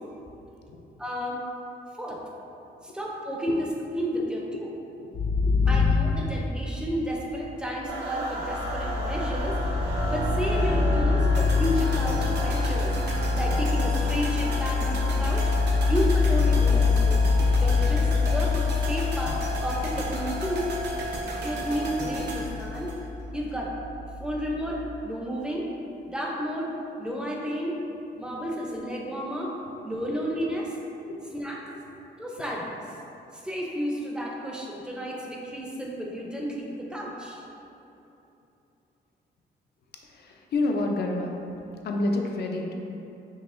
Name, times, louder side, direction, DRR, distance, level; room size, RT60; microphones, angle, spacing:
voice 1, 1.0-1.4 2.0-2.2 2.8-3.7 3.9-4.7 5.7-9.8 10.1-13.0 13.3-15.4 15.9-17.2 17.6-20.7 21.4-22.9 23.3-23.7 24.2-25.7 26.0-26.7 27.0-27.8 28.2-29.5 29.8-30.8 31.3-31.6 32.2-32.7 33.3-37.4, equal, 5° right, -3 dB, 0.5 m, -31 dB
voice 2, 4.5-5.2 5.5-5.7 6.0-6.1 30.1-30.2 31.1-31.2 31.9-32.0 40.0-41.3 41.8-42.8, left 2 dB, 65° left, 2 dB, 0.5 m, -30 dB
sound 1, 5.1-6.9 7.9-24.8, left 4 dB, 85° left, 1.5 m, -25 dB
sound 2, 7.9-22.4, equal, 85° right, 1.5 m, -35 dB
sound 3, 11.3-23.5 23.8-23.9, right 2 dB, 70° right, 0.6 m, -37 dB
5.4 x 2.9 x 2.5 m, 2.9 s
wide cardioid pair, 140°, 18 cm